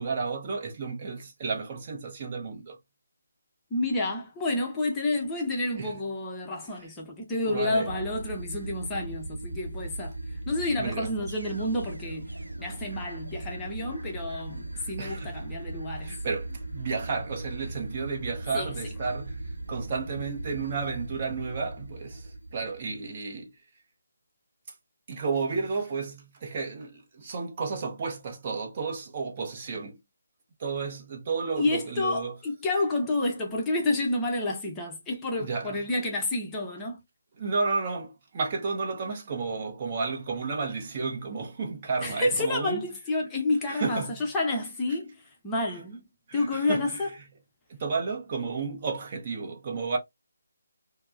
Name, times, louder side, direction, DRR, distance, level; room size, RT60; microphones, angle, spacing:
voice 1, 0.0-2.8 5.8-5.9 7.4-7.9 10.8-11.1 15.0-15.4 16.0-19.4 19.7-23.5 25.1-30.0 30.6-32.4 35.4-35.8 37.4-42.8 43.7-44.1 46.3-47.0 47.7-50.0, right 4 dB, 30° right, 0.7 m, -32 dB
voice 2, 3.7-12.3 12.6-16.1 18.5-18.7 31.6-37.0 42.0-46.0 46.3-47.1, left 2 dB, 10° left, 0.6 m, -29 dB
sound 1, 7.8-23.2, right 2 dB, 75° right, 0.7 m, -38 dB
4.4 x 2.0 x 2.4 m
figure-of-eight pair, 150°, 0 cm